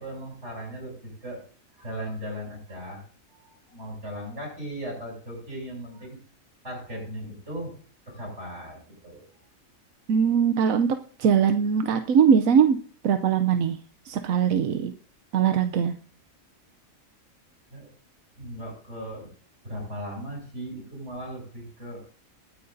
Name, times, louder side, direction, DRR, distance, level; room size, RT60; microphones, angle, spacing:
voice 1, 0.0-1.4 1.8-3.0 3.3-6.2 6.6-7.7 8.1-9.3 17.7-17.9 18.4-19.3 19.6-22.0, equal, 55° right, -1 dB, 7.8 m, -37 dB
voice 2, 10.1-12.8 13.0-13.8 14.0-14.9 15.3-15.9, right 7 dB, 85° right, 8 dB, 1.1 m, -21 dB
21.0 x 9.5 x 2.7 m, 0.43 s
omnidirectional pair, 1.4 m